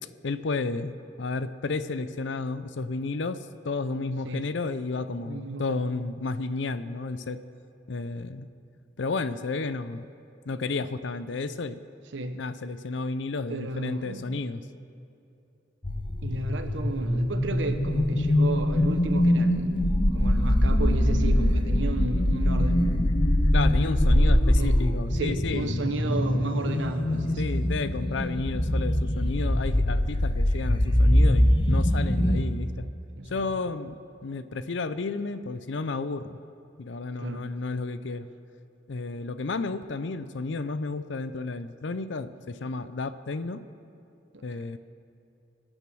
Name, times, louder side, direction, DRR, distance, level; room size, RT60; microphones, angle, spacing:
voice 1, 0.2-3.4 3.6-7.4 7.9-8.5 9.0-10.0 10.5-11.8 12.3-14.6 23.5-25.7 27.4-32.7 33.3-36.4 36.8-38.3 38.9-43.6 44.4-44.8, left 3 dB, 70° left, 12 dB, 0.6 m, -32 dB
voice 2, 5.2-5.8 12.1-12.4 13.5-14.2 16.2-19.7 20.1-23.1 24.1-24.8 25.1-27.6 29.4-29.7 32.2-32.4 33.2-33.5 37.2-37.5 44.3-44.4, right 2 dB, 75° right, 7 dB, 1.1 m, -33 dB
sound 1, 15.8-32.4, left 1 dB, 25° left, 0.9 m, -23 dB
24.0 x 8.9 x 6.2 m, 2.7 s
head